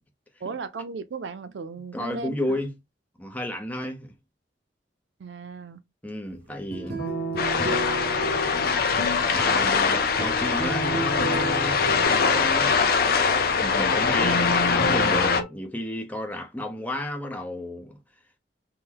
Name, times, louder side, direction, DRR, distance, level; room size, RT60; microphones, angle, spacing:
voice 1, 0.4-2.6 5.2-5.8, right 4 dB, 85° right, 0.4 m, -36 dB
voice 2, 1.8-2.8 3.2-4.1 6.0-7.0 9.3-12.8 13.6-14.5 14.7-18.0, left 1 dB, 10° left, 0.6 m, -32 dB
sound 1, 6.5-12.1, right 1 dB, 65° right, 0.9 m, -36 dB
sound 2, 6.8-15.4, right 1 dB, 75° left, 1.5 m, -32 dB
sound 3, 7.4-15.4, left 5 dB, 55° left, 0.5 m, -23 dB
3.7 x 2.1 x 2.9 m
head